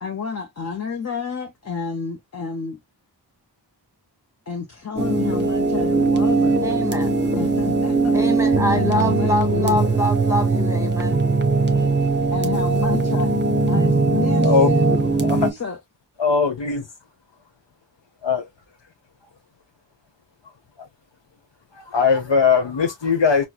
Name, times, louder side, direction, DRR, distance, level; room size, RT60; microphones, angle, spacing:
voice 1, 0.0-2.8 4.5-6.7 7.4-8.2 8.7-9.8 12.3-13.3 13.7-15.0 15.5-15.8, left 5 dB, 35° left, 0.7 m, -30 dB
sound 1, 5.0-15.5, right 3 dB, 25° right, 0.8 m, -20 dB
voice 2, 6.6-7.2 8.1-11.2, left 1 dB, 5° right, 1.1 m, -25 dB
voice 3, 16.2-16.8 18.2-18.4 21.9-23.5, left 5 dB, 75° left, 1.0 m, -19 dB
4.4 x 2.1 x 2.3 m
wide cardioid pair, 45°, 44 cm